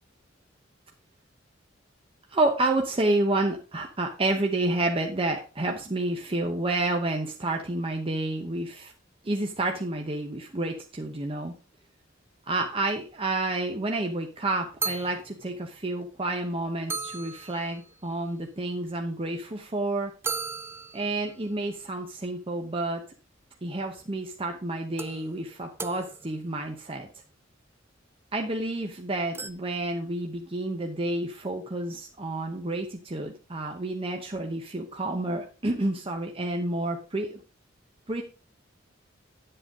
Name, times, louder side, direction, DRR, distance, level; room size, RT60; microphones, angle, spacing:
voice 1, 2.3-8.9 9.2-11.5 12.5-20.1 20.9-23.0 23.6-27.1 28.3-37.4 38.1-38.2, right 2 dB, 30° right, 2 dB, 0.9 m, -29 dB
sound 1, 13.9-14.0 14.4-14.5 14.8-15.5 16.2-16.3 16.5-16.6 16.9-18.0 20.2-21.4 23.8-23.9 25.0-26.6 29.3-29.5, right 4 dB, 10° right, 0.5 m, -36 dB
10.5 x 7.8 x 3.7 m, 0.34 s
head